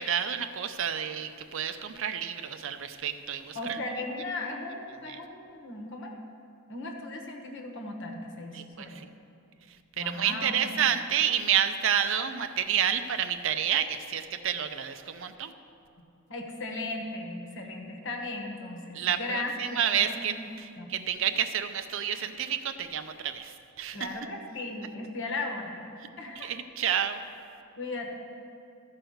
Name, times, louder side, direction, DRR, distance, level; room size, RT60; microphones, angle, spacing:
voice 1, 0.0-3.8 5.1-5.2 8.5-9.1 10.0-15.5 18.9-24.0 26.4-27.2, right 9 dB, 65° right, 9 dB, 0.5 m, -29 dB
voice 2, 3.5-6.1 6.7-9.0 10.0-10.6 16.3-20.5 20.8-21.0 23.9-25.9 26.2-26.5 27.8-28.1, left 2 dB, 60° left, 2 dB, 1.2 m, -37 dB
14.0 x 4.7 x 6.4 m, 2.5 s
head